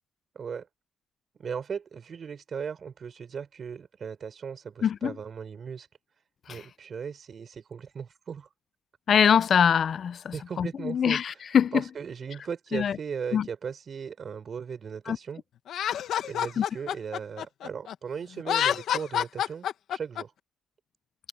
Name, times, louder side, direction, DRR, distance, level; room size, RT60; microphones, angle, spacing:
voice 1, 0.3-0.7 1.4-5.9 6.5-8.5 10.3-11.2 11.7-15.4 16.2-20.3, right 6 dB, 50° right, 6.4 m, -37 dB
voice 2, 4.8-5.2 6.5-6.6 9.1-11.8 12.7-13.0 13.3-13.5 15.1-15.2 16.6-16.7, left 8 dB, 55° left, 0.6 m, -23 dB
Laughter, 15.7-17.9 18.4-20.2, left 10 dB, 75° left, 1.7 m, -28 dB
cardioid pair, 90°, 0 cm